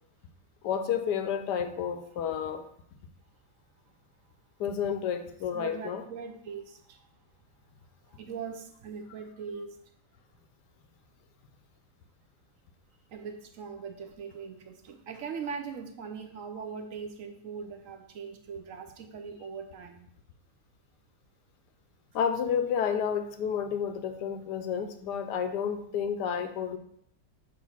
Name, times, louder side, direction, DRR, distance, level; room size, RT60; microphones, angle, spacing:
voice 1, 0.6-2.7 4.6-6.0 22.1-26.8, left 7 dB, 90° left, 8 dB, 1.3 m, -30 dB
voice 2, 5.5-7.1 8.1-9.8 13.1-20.1, right 6 dB, 65° right, 6 dB, 0.9 m, -40 dB
7.0 x 2.6 x 5.6 m, 0.67 s
omnidirectional pair, 1.7 m